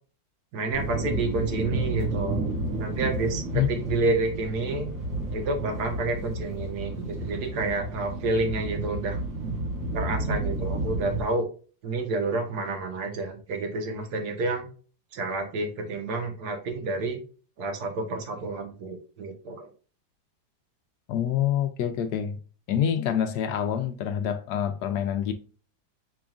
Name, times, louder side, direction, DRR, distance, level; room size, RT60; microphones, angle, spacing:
voice 1, 0.5-2.5 2.8-4.9 5.3-9.2 9.9-11.5 11.8-14.7 15.1-17.2 17.6-19.7, right 3 dB, 60° right, 1.7 m, -29 dB
sound 1, 0.7-11.2, right 2 dB, 80° right, 3.5 m, -31 dB
voice 2, 21.1-22.4 22.7-25.3, left 9 dB, 70° left, 1.1 m, -26 dB
6.0 x 3.5 x 2.4 m
omnidirectional pair, 2.0 m